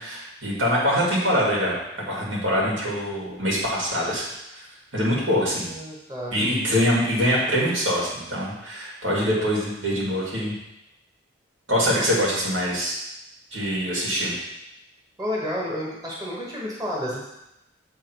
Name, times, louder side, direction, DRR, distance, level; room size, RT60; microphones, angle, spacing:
voice 1, 0.0-1.7 2.1-4.6 4.9-5.7 6.3-10.5 11.7-13.0 13.5-14.3, equal, 85° right, -5 dB, 2.4 m, -24 dB
voice 2, 5.3-6.4 12.0-12.1 15.2-17.3, equal, 20° right, -6 dB, 1.2 m, -31 dB
7.3 x 3.6 x 4.6 m, 0.88 s
head